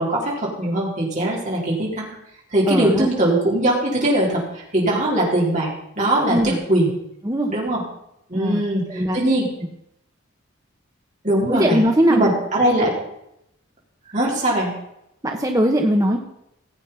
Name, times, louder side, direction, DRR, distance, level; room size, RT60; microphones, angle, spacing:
voice 1, 0.0-2.1 2.5-5.7 6.0-6.9 7.5-7.8 8.3-9.5 11.2-11.8 12.1-12.9 14.1-14.7, right 1 dB, 35° right, -4 dB, 3.9 m, -21 dB
voice 2, 2.7-3.1 6.3-6.6 7.2-7.5 8.3-8.6 8.9-9.2 11.5-12.3 15.2-16.2, equal, 15° right, 2 dB, 1.2 m, -19 dB
16.5 x 8.6 x 5.7 m, 0.79 s
head